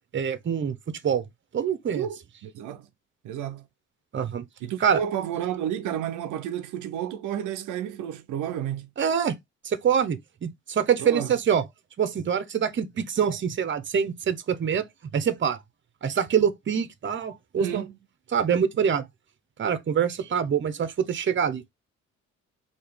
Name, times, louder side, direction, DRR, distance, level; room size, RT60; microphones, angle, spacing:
voice 1, 0.1-0.7 1.0-1.2 1.5-2.1 4.1-4.4 4.8-5.0 9.0-9.3 9.6-11.6 12.0-14.8 15.1-15.6 16.0-17.9 18.3-19.1 19.6-21.7, right 7 dB, 40° right, 0.8 m, -25 dB
voice 2, 1.9-2.9 3.2-3.7 4.6-8.9 11.0-11.3 17.6-17.9, right 10 dB, 90° right, 0.6 m, -31 dB
4.6 x 2.9 x 3.5 m
cardioid pair, 90°, 30 cm